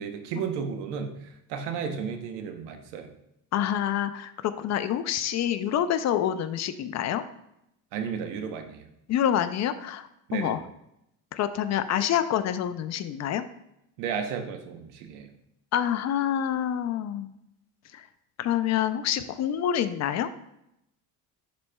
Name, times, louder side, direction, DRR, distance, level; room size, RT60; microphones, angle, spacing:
voice 1, 0.0-3.1 7.9-8.9 10.3-10.6 14.0-15.3, right 6 dB, 90° right, 6 dB, 0.9 m, -33 dB
voice 2, 3.5-7.2 9.1-10.6 11.3-13.4 15.7-17.3 17.9-18.0 18.4-20.3, left 10 dB, 45° left, 11 dB, 0.4 m, -27 dB
11.0 x 4.2 x 2.2 m, 0.82 s
cardioid pair, 130°, 40 cm